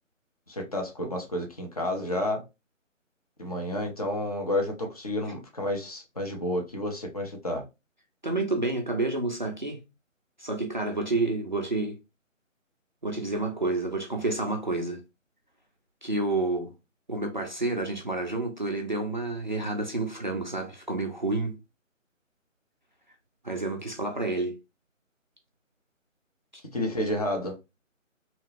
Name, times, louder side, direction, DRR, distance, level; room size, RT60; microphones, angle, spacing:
voice 1, 0.5-2.4 3.4-7.6 26.7-27.6, left 1 dB, 30° left, 0.6 m, -30 dB
voice 2, 8.2-9.8 10.4-12.0 13.0-15.0 16.0-16.7 17.1-21.6 23.4-24.6, right 2 dB, 40° right, 0.4 m, -29 dB
2.8 x 2.1 x 2.9 m
figure-of-eight pair, 150°, 40 cm